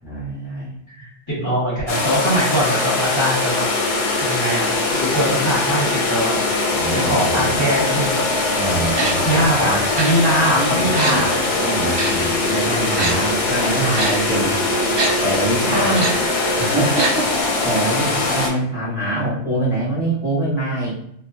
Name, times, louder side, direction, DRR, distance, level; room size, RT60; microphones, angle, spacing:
voice 1, 0.0-0.7 6.7-7.6 8.5-9.8 10.5-11.3 11.5-14.6 15.2-16.0 16.6-20.9, right 1 dB, 5° right, -9 dB, 0.9 m, -24 dB
voice 2, 0.9-3.6 4.2-8.3 9.2-11.4 15.7-16.1, equal, 25° left, -10 dB, 0.9 m, -22 dB
sound 1, 1.9-18.5, left 2 dB, 65° left, 0.8 m, -21 dB
Tick-tock, 9.0-9.1 10.0-10.1 11.0-11.1 12.0-12.1 13.0-13.1 14.0-14.1 15.0-15.1 16.0-16.1 17.0-17.1 17.4-17.5, right 3 dB, 55° right, 0.8 m, -22 dB
2.4 x 2.2 x 2.3 m, 0.69 s
omnidirectional pair, 1.3 m